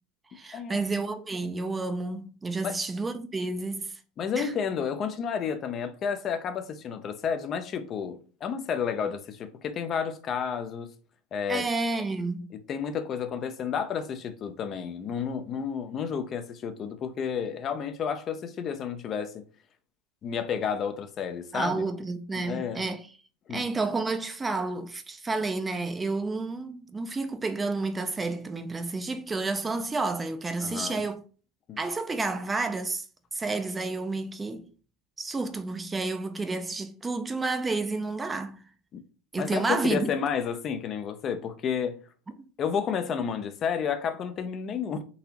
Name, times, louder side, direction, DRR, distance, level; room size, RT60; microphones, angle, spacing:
voice 1, 0.3-3.9 4.3-4.5 11.5-12.5 21.5-23.1 23.5-31.2 31.8-33.1 33.3-34.7 35.2-38.6 39.3-40.1, right 3 dB, 15° right, 0.5 m, -30 dB
voice 2, 4.2-10.9 11.3-11.7 12.5-19.4 20.2-21.8 22.4-22.8 23.5-23.6 30.6-31.0 31.7-31.8 38.9-39.0 39.4-42.0 42.6-45.0, left 7 dB, 40° left, 0.5 m, -31 dB
3.9 x 2.8 x 2.9 m
hypercardioid pair, 100°, 0 cm